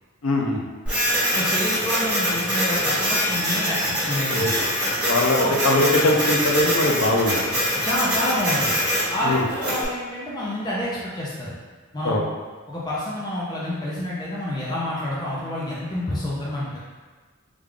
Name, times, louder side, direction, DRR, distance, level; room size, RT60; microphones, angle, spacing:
voice 1, 0.2-0.6 4.3-4.6 5.0-7.5 9.2-9.5 12.0-12.2, left 2 dB, 70° left, 0 dB, 0.5 m, -21 dB
Printer, 0.9-9.8, equal, 5° right, 1.2 m, -24 dB
voice 2, 1.3-4.5 5.3-5.6 7.8-8.7 9.1-11.5 11.9-12.1 12.7-16.8, left 1 dB, 20° left, -6 dB, 0.5 m, -28 dB
3.3 x 2.3 x 3.6 m, 1.4 s
head